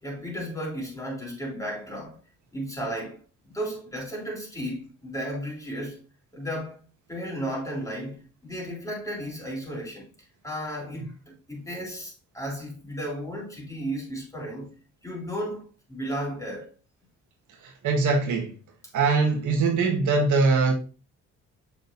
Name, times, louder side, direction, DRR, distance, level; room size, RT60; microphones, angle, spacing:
voice 1, 0.0-2.2 2.5-3.2 3.5-6.0 6.3-6.8 7.1-14.7 15.0-16.7, equal, 10° left, 3.6 m, -34 dB
voice 2, 17.6-18.5 18.9-20.7, right 4 dB, 80° right, 1.7 m, -22 dB
6.6 x 6.4 x 2.7 m
cardioid pair, 90°, 30 cm